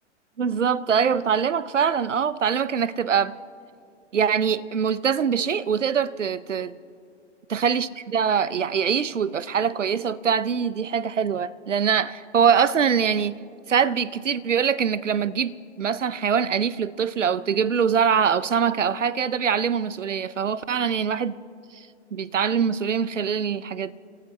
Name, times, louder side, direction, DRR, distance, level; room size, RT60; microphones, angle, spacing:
voice 1, 0.4-3.4 4.1-6.7 7.5-13.4 13.7-21.4 22.1-24.0, right 7 dB, 85° right, 0.6 m, -23 dB
29.0 x 14.5 x 3.1 m
figure-of-eight pair, 110°, 36 cm